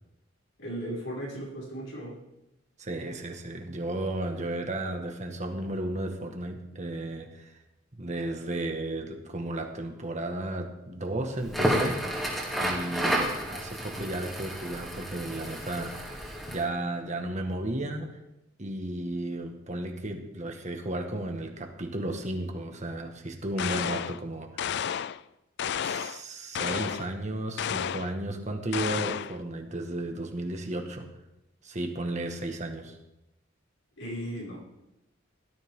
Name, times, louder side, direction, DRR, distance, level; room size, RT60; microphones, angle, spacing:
voice 1, 0.6-2.2 34.0-34.6, equal, 85° left, -5 dB, 6.4 m, -36 dB
voice 2, 2.8-7.5 7.9-12.0 12.6-15.9 16.5-18.1 18.6-24.5 25.8-31.1 31.6-33.0, right 1 dB, 35° right, 4 dB, 1.7 m, -34 dB
Crackle, 11.4-16.7, equal, ahead, 2.5 m, -31 dB
sound 1, 23.6-24.2 24.6-25.2 25.6-26.2 26.5-27.1 27.6-28.1 28.7-29.4, left 8 dB, 60° left, 0.4 m, -31 dB
17.0 x 13.0 x 3.8 m, 0.91 s
head